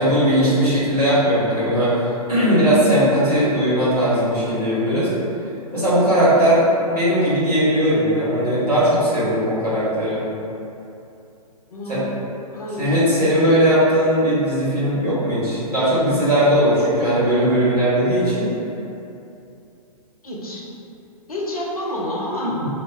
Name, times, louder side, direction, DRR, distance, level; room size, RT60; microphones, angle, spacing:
voice 1, 0.0-1.9 2.3-5.1 5.7-10.2 11.9-12.2 12.8-18.5 22.5-22.7, equal, 85° right, -10 dB, 1.3 m, -18 dB
voice 2, 11.7-12.1 12.5-13.0 20.2-20.6 21.3-22.6, left 1 dB, 70° left, -3 dB, 0.6 m, -28 dB
4.2 x 2.1 x 2.2 m, 2.8 s
figure-of-eight pair, 110°, 19 cm